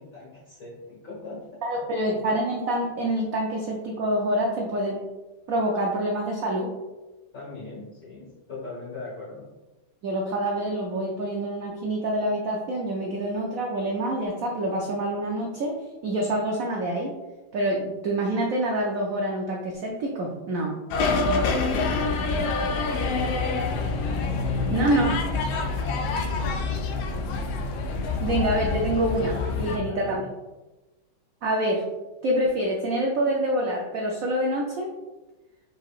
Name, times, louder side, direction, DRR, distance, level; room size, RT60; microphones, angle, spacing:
voice 1, 0.0-1.6 7.3-9.4 26.4-27.0 29.8-30.2, left 3 dB, 45° left, -8 dB, 1.7 m, -40 dB
voice 2, 1.6-5.0 5.5-6.7 10.0-15.8 16.0-17.1 17.5-20.7 24.7-25.2 28.2-30.2 31.4-31.8 32.2-34.9, right 1 dB, 80° right, -1 dB, 0.7 m, -26 dB
sound 1, 20.9-29.8, left 3 dB, 85° left, 1.5 m, -26 dB
5.2 x 3.9 x 2.4 m, 1.1 s
omnidirectional pair, 2.2 m